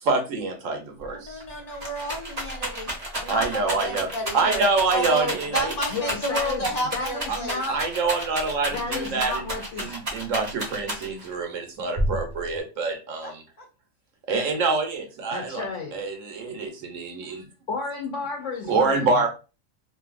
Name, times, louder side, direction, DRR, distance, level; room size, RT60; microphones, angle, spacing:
voice 1, 0.0-1.4 3.3-4.1 4.3-5.7 7.3-7.4 7.7-13.4 14.3-15.7 15.9-17.5 18.7-19.3, right 3 dB, 75° right, 1.1 m, -26 dB
Rattle, 1.0-1.1 1.4-11.3 12.0-12.6, right 1 dB, 35° right, 0.8 m, -31 dB
voice 2, 1.1-2.9 3.2-7.6 13.2-13.3 13.6-13.7, equal, 35° left, 0.8 m, -31 dB
voice 3, 5.9-7.8 8.7-10.0 15.3-16.0 17.7-19.2, left 4 dB, 75° left, 1.0 m, -32 dB
2.7 x 2.5 x 2.3 m
omnidirectional pair, 1.3 m